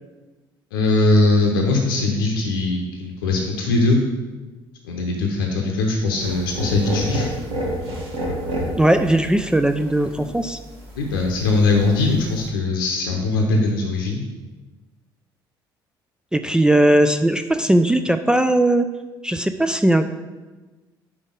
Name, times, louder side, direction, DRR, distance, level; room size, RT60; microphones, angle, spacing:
voice 1, 0.7-4.0 4.8-7.3 11.0-14.2, left 2 dB, 70° left, 1 dB, 0.7 m, -20 dB
sound 1, 6.2-12.5, equal, 55° right, 1.5 m, -30 dB
voice 2, 8.8-10.6 16.3-18.8 19.2-20.1, right 1 dB, 5° right, 8 dB, 0.3 m, -18 dB
5.2 x 4.8 x 5.1 m, 1.2 s
figure-of-eight pair, 50°, 12 cm